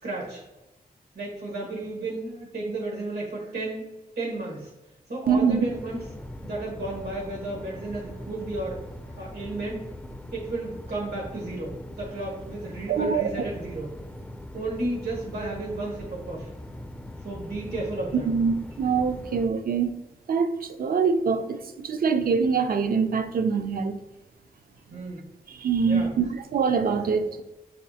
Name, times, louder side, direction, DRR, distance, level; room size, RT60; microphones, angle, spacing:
voice 1, 0.0-0.4 1.1-3.9 4.2-4.7 5.1-6.0 6.4-8.8 9.2-9.8 10.3-13.9 14.5-16.5 17.2-18.3 24.9-25.3 25.8-26.1, right 2 dB, 85° right, -3 dB, 1.3 m, -33 dB
voice 2, 5.3-5.7 12.9-13.5 18.1-19.9 20.3-24.0 25.5-27.4, right 5 dB, 65° right, 9 dB, 0.5 m, -24 dB
sound 1, 5.6-19.5, left 1 dB, 10° left, 0.4 m, -41 dB
6.4 x 2.4 x 2.7 m, 1.0 s
cardioid pair, 60°, 16 cm